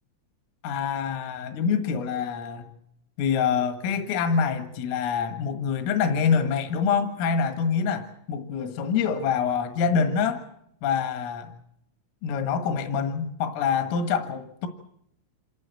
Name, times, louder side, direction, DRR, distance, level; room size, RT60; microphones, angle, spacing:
voice 1, 0.6-2.7 3.2-10.5 10.8-11.5 12.2-14.7, left 6 dB, 80° left, 8 dB, 4.3 m, -26 dB
27.5 x 15.5 x 9.0 m, 0.75 s
omnidirectional pair, 5.8 m